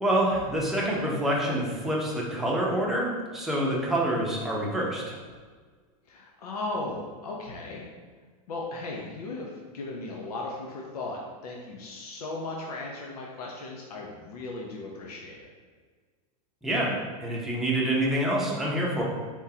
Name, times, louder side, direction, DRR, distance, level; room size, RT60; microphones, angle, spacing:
voice 1, 0.0-5.2 16.6-16.9 17.2-19.0, right 1 dB, ahead, -5 dB, 0.7 m, -27 dB
voice 2, 6.1-7.8 8.5-15.4, left 2 dB, 90° left, -1 dB, 0.8 m, -36 dB
4.6 x 3.6 x 2.8 m, 1.5 s
supercardioid pair, 145°, 19 cm